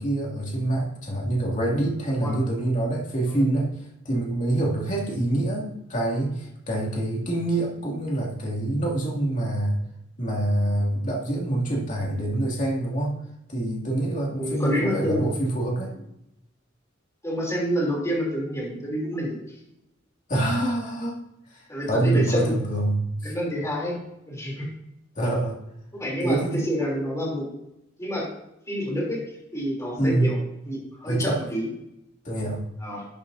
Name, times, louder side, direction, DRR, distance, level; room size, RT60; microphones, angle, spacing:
voice 1, 0.0-3.7 4.0-9.8 10.2-13.2 13.5-15.9 20.3-21.2 21.5-21.6 21.9-23.3 25.2-25.6 26.2-26.6 30.0-30.3 31.0-31.4 32.2-32.6, right 1 dB, 40° left, -3 dB, 2.4 m, -25 dB
voice 2, 3.2-3.5 14.3-15.3 17.2-19.4 21.7-22.5 23.2-24.0 24.3-24.7 25.9-27.5 28.0-28.3 28.7-29.2 29.5-30.4 30.6-31.7 32.8-33.1, equal, 15° left, -3 dB, 3.2 m, -28 dB
12.0 x 8.8 x 2.7 m, 0.85 s
head